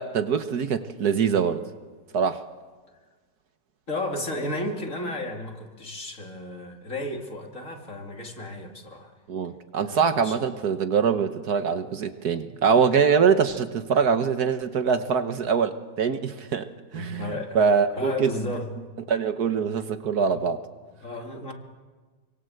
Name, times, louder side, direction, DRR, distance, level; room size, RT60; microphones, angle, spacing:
voice 1, 0.0-1.6 2.1-2.4 9.3-16.7 16.9-18.3 19.1-20.6, right 6 dB, 65° right, 9 dB, 1.6 m, -23 dB
voice 2, 3.9-9.1 9.8-10.4 16.9-17.6 17.9-18.7 20.3-20.4 21.0-21.5, left 2 dB, 45° left, 2 dB, 3.3 m, -33 dB
26.5 x 25.0 x 8.0 m, 1.4 s
omnidirectional pair, 1.9 m